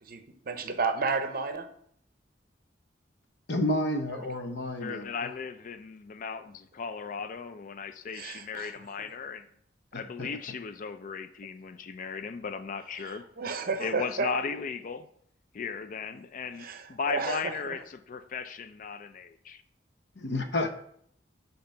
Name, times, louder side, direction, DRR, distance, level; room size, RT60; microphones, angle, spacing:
voice 1, 0.0-1.7 8.1-8.7 13.0-14.3 16.6-17.8, right 4 dB, 55° right, 8 dB, 0.6 m, -32 dB
voice 2, 3.5-5.1 10.2-10.3 20.2-20.7, left 1 dB, 65° left, 6 dB, 0.8 m, -30 dB
voice 3, 4.8-9.5 9.9-13.2 13.8-15.1 15.5-19.6, left 5 dB, 45° left, 11 dB, 0.4 m, -36 dB
6.8 x 2.9 x 5.5 m, 0.65 s
head